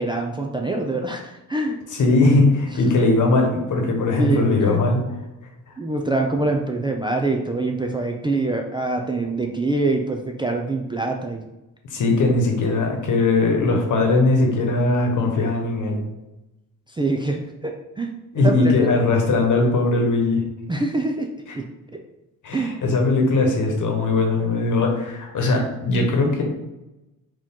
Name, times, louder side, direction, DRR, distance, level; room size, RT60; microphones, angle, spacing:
voice 1, 0.0-1.8 4.2-4.8 5.8-11.4 16.9-18.9 20.7-21.3 21.5-21.6 22.5-22.7, right 2 dB, 15° right, 1 dB, 0.3 m, -25 dB
voice 2, 2.0-5.0 5.7-5.8 11.8-16.0 18.3-20.4 21.5-21.6 22.4-26.4, left 3 dB, 60° left, 2 dB, 1.2 m, -19 dB
4.4 x 3.0 x 3.6 m, 0.98 s
cardioid pair, 120°, 34 cm